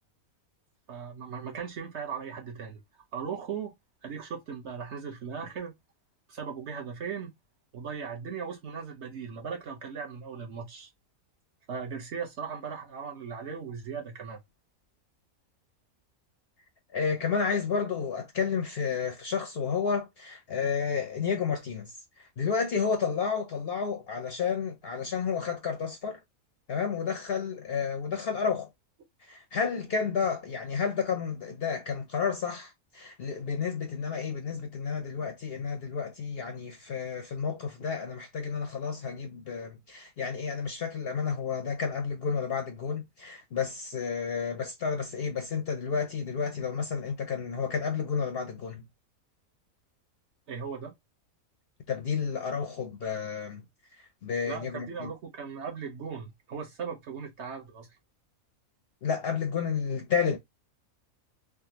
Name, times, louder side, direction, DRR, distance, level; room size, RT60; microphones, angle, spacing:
voice 1, 0.9-2.8 3.1-3.7 4.0-5.7 6.3-7.3 7.7-10.9 11.7-14.4 50.5-50.9 54.5-57.9, right 6 dB, 60° right, 1.0 m, -38 dB
voice 2, 16.9-26.2 26.7-28.7 29.2-48.8 51.9-53.6 53.9-55.1 59.0-60.4, left 6 dB, 60° left, 0.6 m, -31 dB
3.5 x 2.1 x 2.8 m
omnidirectional pair, 1.5 m